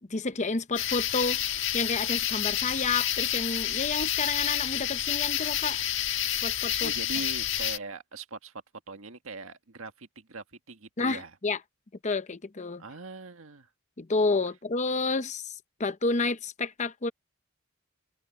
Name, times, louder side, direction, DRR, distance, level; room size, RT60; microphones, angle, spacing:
voice 1, 0.1-1.4 1.7-5.8 6.4-6.9 11.0-11.6 12.0-12.8 14.0-17.1, left 3 dB, 35° left, 0.8 m, -30 dB
sound 1, 0.8-7.8, left 11 dB, 60° left, 1.5 m, -29 dB
voice 2, 6.8-11.4 12.8-13.7, right 3 dB, 70° right, 1.7 m, -41 dB
head